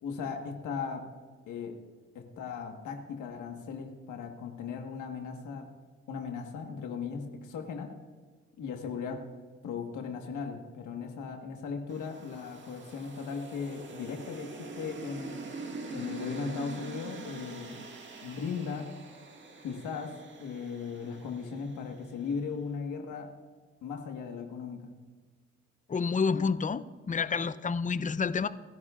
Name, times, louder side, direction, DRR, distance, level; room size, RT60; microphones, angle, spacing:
voice 1, 0.0-1.1 1.5-1.8 2.1-5.7 6.1-7.9 8.6-9.3 9.6-15.4 15.9-17.8 18.2-19.0 19.6-23.3 23.8-24.9, left 5 dB, 80° left, 3 dB, 1.6 m, -37 dB
sound 1, 11.9-22.2, right 3 dB, 40° right, 1.9 m, -44 dB
voice 2, 25.9-28.5, left 5 dB, 25° left, 14 dB, 0.6 m, -29 dB
29.0 x 11.0 x 2.5 m, 1.4 s
cardioid pair, 90°, 30 cm